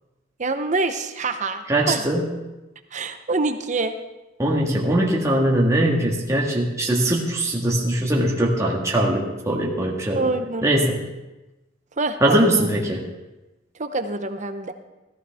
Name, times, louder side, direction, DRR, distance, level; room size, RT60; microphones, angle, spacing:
voice 1, 0.4-2.1 2.9-3.9 10.2-10.7 12.0-12.7 13.8-14.7, right 3 dB, 35° right, 8 dB, 0.7 m, -26 dB
voice 2, 1.7-2.2 4.4-10.3 10.6-11.0 12.2-13.0, right 1 dB, 15° right, -3 dB, 1.6 m, -21 dB
14.5 x 14.0 x 3.5 m, 1.0 s
head